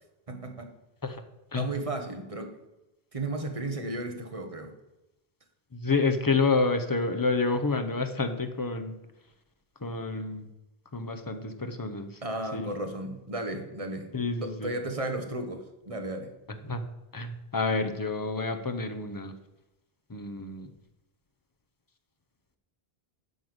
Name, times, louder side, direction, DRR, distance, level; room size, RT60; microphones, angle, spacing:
voice 1, 0.3-0.7 1.5-2.6 3.1-4.7 12.2-14.1 14.4-16.3, right 2 dB, 35° right, 5 dB, 1.3 m, -34 dB
voice 2, 5.7-9.0 9.8-10.5 10.9-12.1 12.5-12.7 14.1-14.7 16.5-16.8 17.1-19.3 20.1-20.7, left 3 dB, 20° left, 7 dB, 0.8 m, -29 dB
9.4 x 5.6 x 8.0 m, 0.94 s
omnidirectional pair, 1.0 m